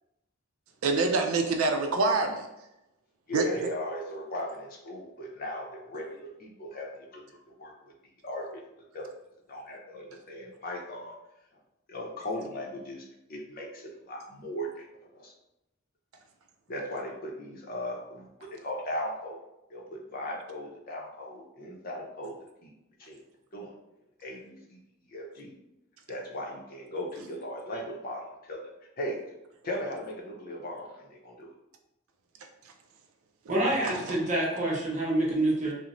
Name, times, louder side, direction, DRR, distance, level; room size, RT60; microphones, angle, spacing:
voice 1, 0.8-2.5 3.3-3.7 33.8-34.0, right 3 dB, 85° right, 5 dB, 0.4 m, -26 dB
voice 2, 3.3-7.9 8.2-8.6 8.9-9.1 9.5-11.1 11.9-14.9 15.1-15.3 16.7-19.4 19.7-22.4 22.6-22.7 23.0-23.2 23.5-23.7 24.2-24.8 25.1-25.5 26.1-28.6 29.0-29.2 29.6-31.5, equal, 45° left, -1 dB, 0.6 m, -37 dB
voice 3, 33.5-35.8, right 1 dB, 35° right, -4 dB, 0.9 m, -27 dB
3.0 x 2.0 x 3.7 m, 0.92 s
head